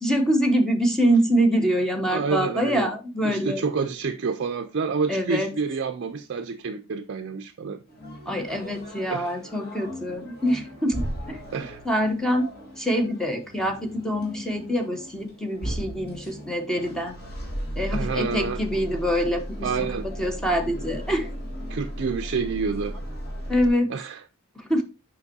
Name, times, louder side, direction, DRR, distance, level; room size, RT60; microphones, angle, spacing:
voice 1, 0.0-3.6 5.1-5.5 8.3-11.4 11.9-12.5 12.8-17.1 17.8-19.9 20.2-21.3 23.5-23.9 24.7-24.8, equal, 5° left, 0.7 m, -25 dB
voice 2, 2.1-2.9 3.2-7.8 8.3-8.4 9.1-9.4 11.5-11.8 17.9-18.6 19.6-20.1 21.7-23.0 23.9-24.2, right 5 dB, 50° right, 0.5 m, -28 dB
sound 1, 7.9-23.7, equal, 45° left, 1.9 m, -36 dB
6.9 x 5.2 x 2.6 m
head